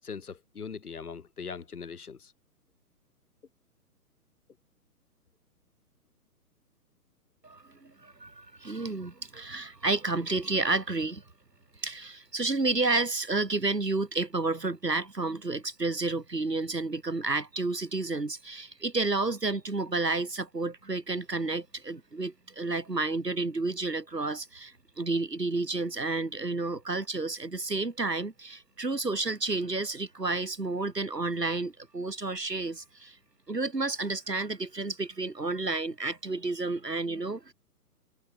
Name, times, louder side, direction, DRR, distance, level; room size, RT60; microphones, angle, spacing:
voice 1, 0.0-2.3, left 5 dB, 65° left, 7.1 m, -40 dB
voice 2, 7.4-11.2 11.8-33.2 33.5-37.5, right 3 dB, 90° right, 3.2 m, -31 dB
figure-of-eight pair, 125°, 47 cm